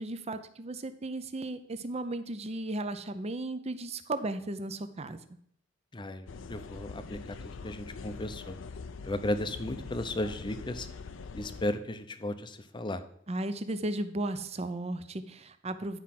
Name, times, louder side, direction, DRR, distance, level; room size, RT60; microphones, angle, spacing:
voice 1, 0.0-5.2 13.3-16.0, right 2 dB, 35° right, 11 dB, 0.6 m, -35 dB
voice 2, 5.9-8.6 9.0-10.9 11.3-13.0, left 1 dB, 25° left, 10 dB, 0.6 m, -35 dB
sound 1, 6.3-11.7, left 4 dB, 75° left, 0.5 m, -43 dB
10.5 x 4.8 x 5.9 m, 0.67 s
head